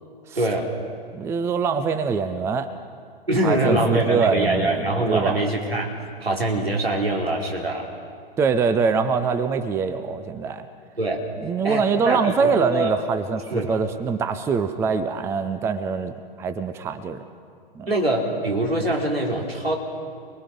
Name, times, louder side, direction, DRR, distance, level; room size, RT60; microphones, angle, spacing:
voice 1, 0.4-0.7 3.3-5.9 6.2-7.9 11.0-11.2 11.6-12.9 13.5-13.8 17.9-19.8, right 1 dB, 85° right, -1 dB, 3.9 m, -23 dB
voice 2, 1.1-2.7 3.4-5.4 8.4-10.6 11.4-17.2 17.7-17.9, right 5 dB, 10° right, 11 dB, 0.6 m, -24 dB
28.5 x 21.0 x 5.2 m, 2.2 s
figure-of-eight pair, 115°, 29 cm